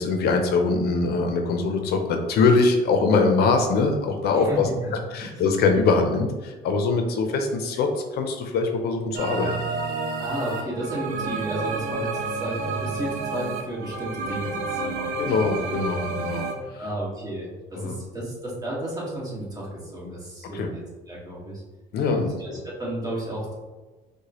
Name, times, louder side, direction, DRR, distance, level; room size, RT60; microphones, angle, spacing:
voice 1, 0.0-4.7 5.1-9.6 15.2-16.8 17.7-17.9 20.5-20.7 21.9-22.6, left 4 dB, 70° left, 4 dB, 0.5 m, -23 dB
voice 2, 4.3-4.9 5.2-5.3 10.2-15.4 16.8-21.6 22.1-23.5, right 1 dB, 20° right, -5 dB, 1.4 m, -33 dB
sound 1, 9.1-16.5, right 3 dB, 90° right, 0.5 m, -30 dB
4.7 x 2.2 x 2.9 m, 1.3 s
cardioid pair, 110°, 17 cm